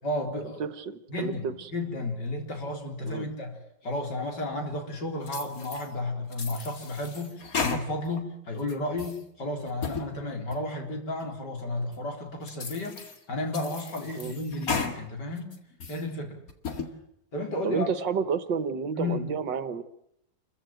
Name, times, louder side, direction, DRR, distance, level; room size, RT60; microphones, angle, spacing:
voice 1, 0.0-0.6 1.1-13.0 13.3-15.6 15.9-16.4 17.3-17.9 18.9-19.4, left 2 dB, 65° left, 3 dB, 4.6 m, -33 dB
voice 2, 0.6-1.7 3.0-3.3 14.2-14.3 17.6-19.8, right 6 dB, 75° right, 13 dB, 1.9 m, -30 dB
sound 1, 5.3-5.9 6.3-8.2 8.6-9.2 9.7-10.1 10.5-10.6 11.2-11.3 11.9-12.0 12.5-13.2 13.5-15.0 15.4-16.0 16.5-16.9, left 5 dB, 50° left, 2.5 m, -34 dB
28.5 x 15.0 x 9.2 m, 0.76 s
omnidirectional pair, 2.0 m